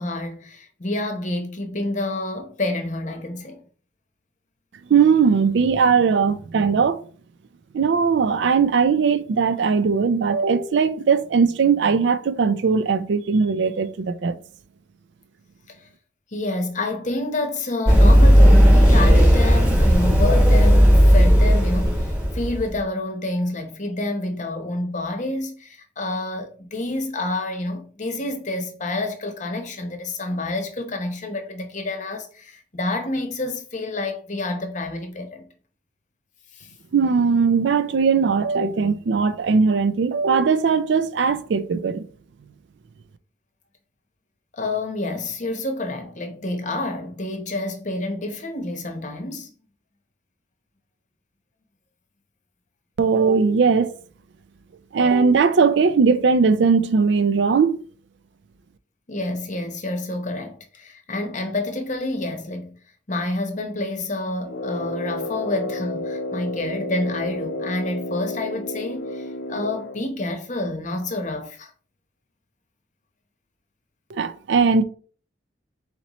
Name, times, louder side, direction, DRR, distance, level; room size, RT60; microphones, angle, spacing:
voice 1, 0.0-3.6 15.7-15.9 16.3-35.5 36.5-36.7 44.5-49.5 59.1-62.7 63.1-71.7, left 2 dB, 40° left, 0.8 m, -28 dB
voice 2, 4.9-7.0 7.7-14.3 36.9-42.0 53.0-53.9 54.9-57.8 74.1-74.8, right 5 dB, 65° right, 0.4 m, -19 dB
Run, 17.9-22.6, equal, 10° right, 1.2 m, -14 dB
Brass instrument, 64.4-70.1, left 1 dB, 65° left, 0.5 m, -31 dB
4.3 x 4.1 x 3.0 m
head